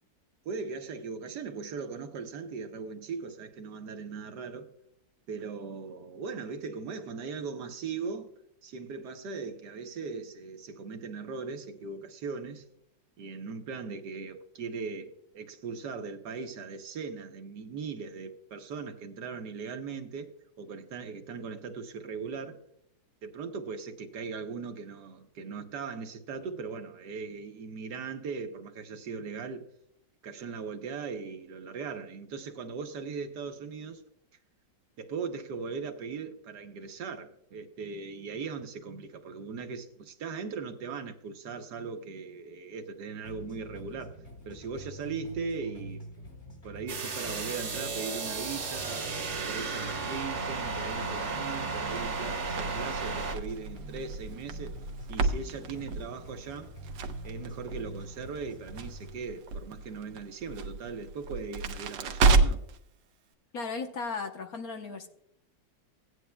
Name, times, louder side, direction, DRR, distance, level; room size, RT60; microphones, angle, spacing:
voice 1, 0.4-4.7 5.3-8.3 8.6-12.6 13.2-20.3 20.6-22.6 23.2-29.6 30.2-34.0 35.0-44.2 44.4-46.1 46.6-49.1 49.5-54.7 55.1-56.7 57.2-62.6, right 5 dB, 65° right, 1.4 m, -39 dB
sound 1, 43.2-59.2, equal, 35° left, 4.2 m, -46 dB
sound 2, 46.9-53.3, right 4 dB, 40° right, 1.4 m, -34 dB
Crackle, 51.9-62.8, right 3 dB, 90° right, 1.6 m, -31 dB
voice 2, 63.5-65.1, left 4 dB, 60° left, 1.3 m, -36 dB
17.0 x 9.4 x 2.2 m
omnidirectional pair, 2.0 m